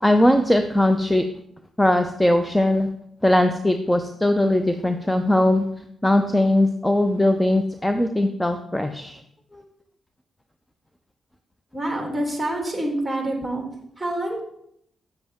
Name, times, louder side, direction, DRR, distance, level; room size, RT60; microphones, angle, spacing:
voice 1, 0.0-1.2 1.8-2.9 3.2-5.6 6.0-9.2 9.5-9.6, left 1 dB, 10° left, 8 dB, 0.6 m, -20 dB
voice 2, 11.7-13.6 14.0-14.4, right 1 dB, 10° right, 0 dB, 2.8 m, -26 dB
9.0 x 7.5 x 3.6 m, 0.74 s
supercardioid pair, 60°, 0 cm